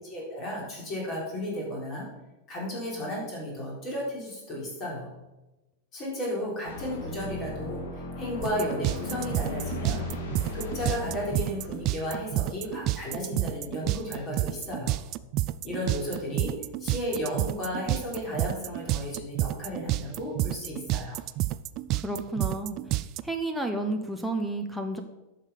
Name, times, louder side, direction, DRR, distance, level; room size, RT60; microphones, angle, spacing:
voice 1, 0.1-2.1 2.5-5.1 5.9-10.0 10.5-15.0 15.6-16.5 16.8-21.2, left 1 dB, 25° left, -3 dB, 4.1 m, -34 dB
sound 1, 6.7-13.3, left 3 dB, 65° left, 2.3 m, -37 dB
sound 2, 8.4-23.2, right 17 dB, 35° right, 0.3 m, -29 dB
voice 2, 22.0-22.8 23.2-25.0, right 2 dB, ahead, 2 dB, 0.7 m, -31 dB
11.0 x 6.6 x 5.8 m, 1.0 s
supercardioid pair, 165°, 0 cm